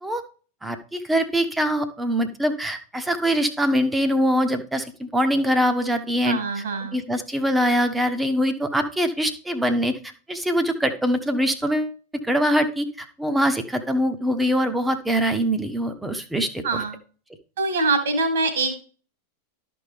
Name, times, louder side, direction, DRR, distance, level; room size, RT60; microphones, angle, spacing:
voice 1, 0.6-6.4 6.9-10.0 10.3-11.9 12.2-16.8, equal, 5° right, 8 dB, 1.1 m, -23 dB
voice 2, 6.2-7.0 16.6-17.0 17.6-18.8, right 3 dB, 60° right, 6 dB, 2.2 m, -24 dB
12.5 x 5.3 x 3.5 m, 0.39 s
figure-of-eight pair, 90°, 0 cm